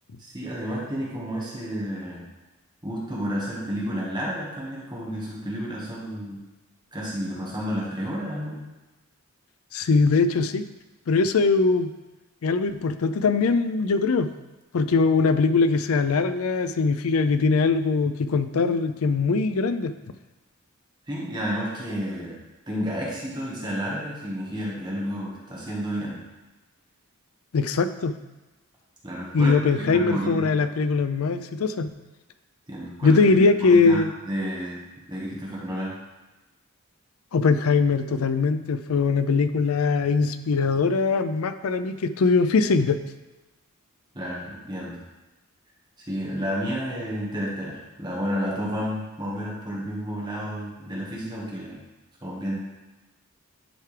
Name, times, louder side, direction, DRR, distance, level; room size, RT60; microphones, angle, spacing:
voice 1, 0.2-2.2 2.8-6.4 6.9-8.6 21.1-22.4 22.7-26.2 29.0-30.5 32.7-33.1 33.7-34.8 35.1-36.0 44.1-45.0 46.1-51.8 52.2-52.6, equal, 20° right, -5 dB, 1.3 m, -31 dB
voice 2, 9.7-10.6 11.1-11.9 12.4-14.3 14.7-19.9 27.5-28.2 29.3-31.9 33.0-34.1 37.3-43.0, left 4 dB, 80° left, 11 dB, 0.5 m, -21 dB
10.0 x 4.5 x 3.3 m, 1.1 s
head